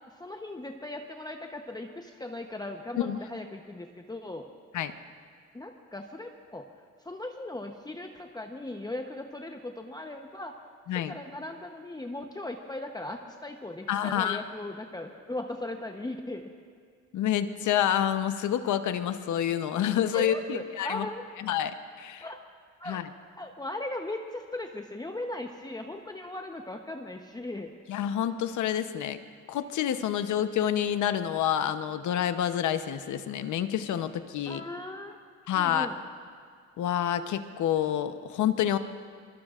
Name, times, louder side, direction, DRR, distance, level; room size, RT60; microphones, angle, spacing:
voice 1, 0.2-4.5 5.5-6.6 7.0-10.5 10.9-16.5 20.0-21.3 22.2-22.4 22.8-23.0 23.4-27.7 34.4-35.2 35.5-36.0, left 2 dB, 15° left, 3 dB, 0.9 m, -38 dB
voice 2, 13.9-14.4 17.1-21.1 21.4-22.2 22.8-23.0 27.9-29.2 29.5-34.6 35.5-35.9 36.8-38.8, left 10 dB, 75° left, 10 dB, 0.9 m, -28 dB
24.0 x 21.5 x 2.5 m, 2.2 s
cardioid pair, 90°, 30 cm